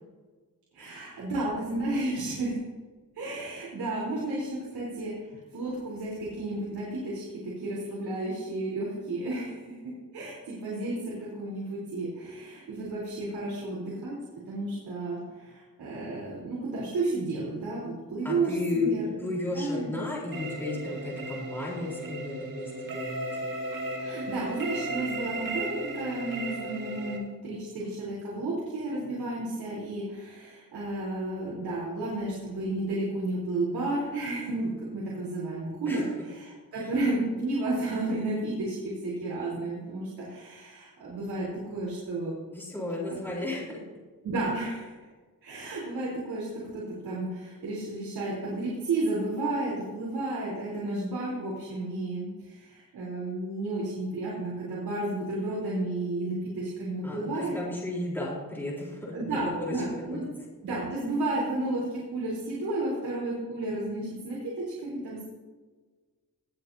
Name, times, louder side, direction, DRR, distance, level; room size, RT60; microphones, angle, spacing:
voice 1, 0.7-2.6 3.1-14.2 14.5-19.1 19.5-19.9 24.0-41.5 41.7-42.3 43.1-43.2 44.2-45.1 45.4-57.5 59.1-60.3 60.6-65.3, right 2 dB, 85° right, -6 dB, 3.8 m, -32 dB
voice 2, 18.2-18.9 19.2-23.3 35.9-36.0 36.7-36.9 42.5-43.8 57.0-60.2, left 2 dB, 5° left, -5 dB, 3.8 m, -34 dB
sound 1, 20.3-27.2, right 2 dB, 65° right, 2.1 m, -35 dB
19.0 x 8.2 x 2.8 m, 1.4 s
wide cardioid pair, 120°, 36 cm